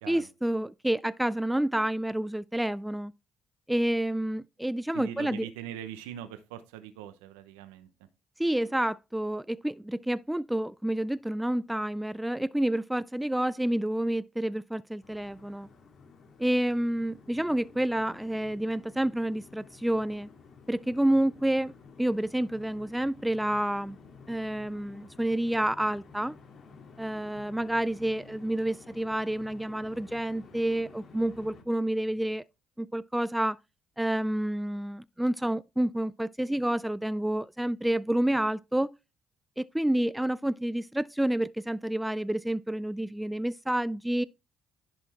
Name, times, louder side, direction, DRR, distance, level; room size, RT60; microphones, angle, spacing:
voice 1, 0.1-3.1 3.7-5.5 8.4-15.7 16.4-20.3 20.7-21.7 22.0-24.0 24.3-26.4 27.0-32.4 32.8-33.6 34.0-38.9 39.6-44.2, right 1 dB, 5° right, 0.3 m, -29 dB
voice 2, 4.9-7.9, right 11 dB, 90° right, 0.7 m, -42 dB
sound 1, 15.0-31.6, left 4 dB, 55° left, 2.1 m, -52 dB
11.0 x 4.4 x 4.2 m
hypercardioid pair, 60°, 0 cm